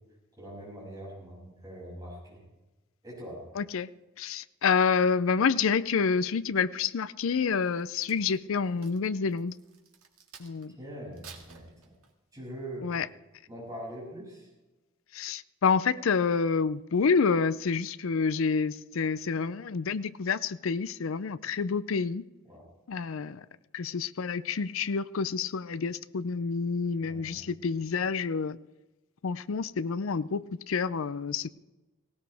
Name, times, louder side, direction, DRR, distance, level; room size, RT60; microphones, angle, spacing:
voice 1, 0.4-2.4 3.0-3.5 10.8-11.9 12.3-12.9 13.5-14.5 22.5-22.7 27.0-27.5, right 1 dB, 15° right, 6.9 m, -42 dB
voice 2, 3.6-3.9 4.2-9.6 10.4-10.7 12.8-13.1 15.1-22.2 22.9-23.4 23.7-28.6 29.2-31.5, left 5 dB, 70° left, 0.5 m, -28 dB
Crack, 7.6-10.7 11.1-12.3 12.9-13.1, right 7 dB, 90° right, 2.1 m, -53 dB
18.0 x 17.5 x 3.5 m
head